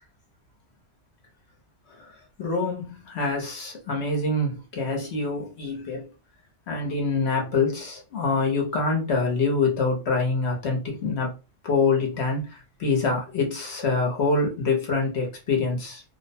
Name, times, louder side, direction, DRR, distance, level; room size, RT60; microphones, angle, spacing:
voice 1, 2.4-6.1 6.7-11.3 11.6-16.0, left 3 dB, 60° left, 1.1 m, -25 dB
2.9 x 2.1 x 2.7 m
omnidirectional pair, 1.3 m